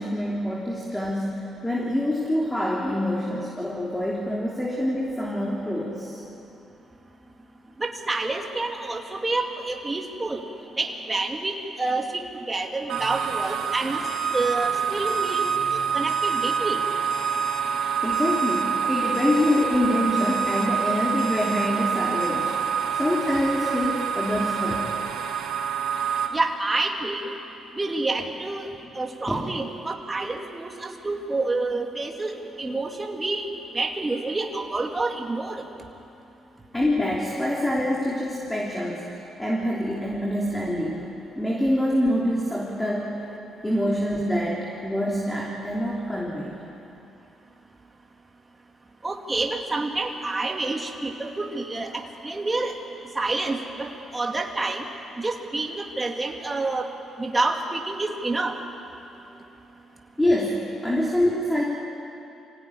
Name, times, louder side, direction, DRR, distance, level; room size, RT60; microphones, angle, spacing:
voice 1, 0.0-6.2 17.7-22.6 23.0-25.0 29.3-29.5 36.7-43.2 43.6-46.5 60.2-61.6, left 1 dB, 10° left, -3 dB, 3.3 m, -26 dB
voice 2, 7.8-10.4 10.8-14.0 14.3-15.5 15.9-16.8 26.3-27.3 27.8-28.7 28.9-33.5 33.7-35.6 49.0-52.7 53.2-54.9 55.2-56.9 57.2-58.5, right 2 dB, 20° right, 2 dB, 2.3 m, -28 dB
sound 1, 12.9-26.3, right 7 dB, 75° right, 2.0 m, -26 dB
Alarm, 14.0-14.6 15.1-15.6 16.1-16.6 17.1-17.6 18.1-18.6 19.1-19.6 20.2-20.7 21.2-21.7 22.2-22.3, left 7 dB, 65° left, 3.4 m, -42 dB
24.5 x 16.5 x 9.8 m, 2.8 s
cardioid pair, 90°, 0 cm